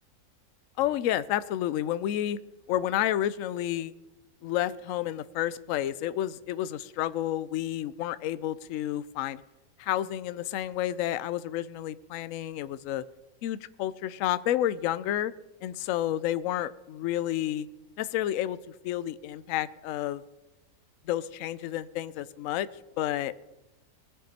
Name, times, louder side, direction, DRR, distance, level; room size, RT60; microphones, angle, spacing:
voice 1, 0.8-2.4 2.7-3.9 4.4-9.4 9.8-13.0 13.4-15.3 15.6-17.7 18.0-18.6 18.8-20.2 21.1-22.7 23.0-23.3, left 12 dB, 70° left, 15 dB, 0.9 m, -30 dB
19.5 x 7.4 x 4.2 m, 1.0 s
omnidirectional pair, 1.6 m